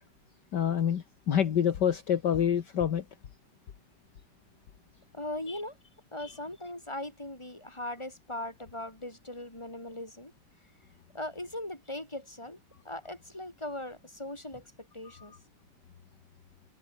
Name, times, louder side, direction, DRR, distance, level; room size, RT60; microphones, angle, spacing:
voice 1, 0.5-3.0 5.5-5.6 15.2-15.3, left 9 dB, 60° left, 1.9 m, -27 dB
voice 2, 5.1-5.8 6.1-10.3 11.1-12.6 12.8-15.3, left 1 dB, 15° left, 5.0 m, -39 dB
omnidirectional pair, 2.1 m